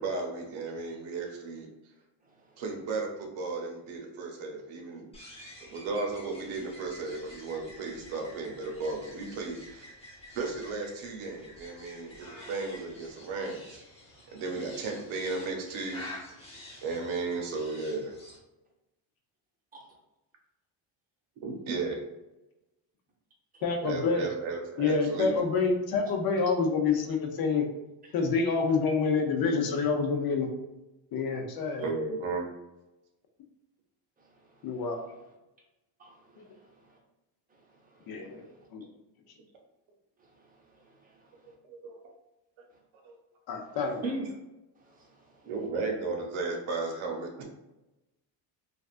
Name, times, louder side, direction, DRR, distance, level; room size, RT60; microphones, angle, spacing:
voice 1, 0.0-1.7 2.6-5.1 5.6-9.9 10.3-13.8 14.3-16.1 16.8-18.1 21.4-22.0 23.8-25.4 31.8-32.5 41.5-42.0 43.0-43.2 44.0-44.3 45.4-47.4, right 3 dB, 75° right, 2 dB, 0.9 m, -34 dB
voice 2, 2.2-2.6 5.3-5.8 14.1-14.4 16.4-16.8 34.2-35.3 36.0-37.0 37.5-38.6 40.2-41.5 42.7-42.8 43.6-43.8 44.0-44.1 44.8-45.7, right 3 dB, 20° right, -2 dB, 0.7 m, -60 dB
sound 1, 5.1-18.4, left 1 dB, 10° left, 0.7 m, -49 dB
voice 3, 23.6-24.3 24.8-27.7 28.1-30.5 31.1-31.8 34.6-35.0 36.4-36.5 38.1-38.4 38.7-38.8 43.5-44.0, left 4 dB, 50° left, 4 dB, 0.6 m, -27 dB
3.3 x 2.4 x 2.4 m, 0.98 s
cardioid pair, 125°, 48 cm